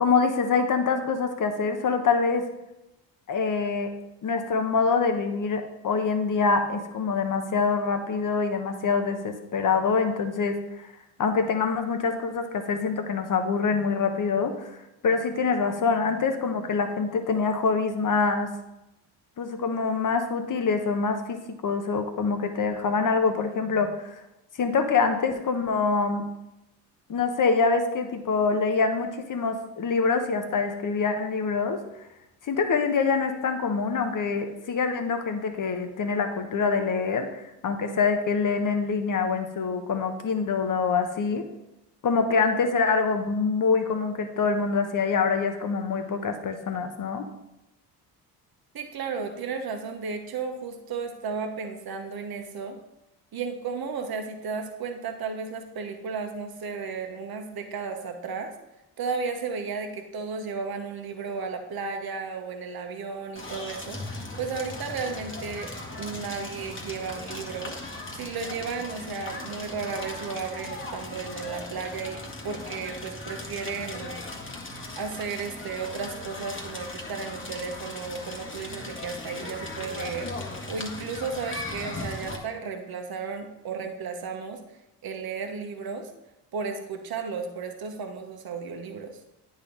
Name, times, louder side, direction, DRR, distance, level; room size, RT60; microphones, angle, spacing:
voice 1, 0.0-2.4 3.3-3.9 4.2-10.9 11.2-14.7 15.0-18.5 19.4-24.2 24.6-26.2 27.1-31.8 32.4-41.4 42.0-47.3, left 4 dB, 40° left, 7 dB, 1.1 m, -25 dB
voice 2, 48.7-52.8 53.3-58.5 59.0-67.8 68.1-74.2 75.0-80.3 80.7-84.6 85.0-86.1 86.5-89.2, right 5 dB, 50° right, 5 dB, 1.2 m, -34 dB
Crackle, 63.4-82.4, left 2 dB, 25° left, 1.5 m, -38 dB
9.5 x 4.2 x 3.9 m, 0.91 s
hypercardioid pair, 55°, 48 cm